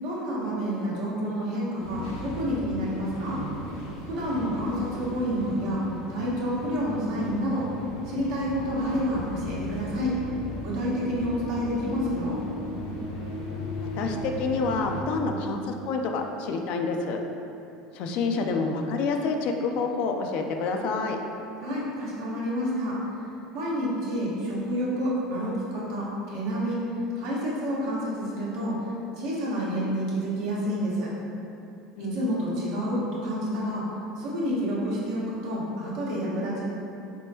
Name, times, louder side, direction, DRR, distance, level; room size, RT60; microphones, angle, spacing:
voice 1, 0.0-3.4 4.0-5.8 6.1-7.7 8.1-10.2 10.6-12.4 21.6-23.0 23.5-26.8 27.1-28.9 29.2-31.1 32.0-33.9 34.2-36.6, equal, 70° right, -7 dB, 1.2 m, -29 dB
sound 1, 1.8-15.0, equal, 80° left, 0.9 m, -36 dB
voice 2, 14.0-17.2 17.9-21.2 32.0-32.2, left 4 dB, 60° left, 3 dB, 0.4 m, -28 dB
4.3 x 3.5 x 2.7 m, 2.8 s
hypercardioid pair, 85°, 2 cm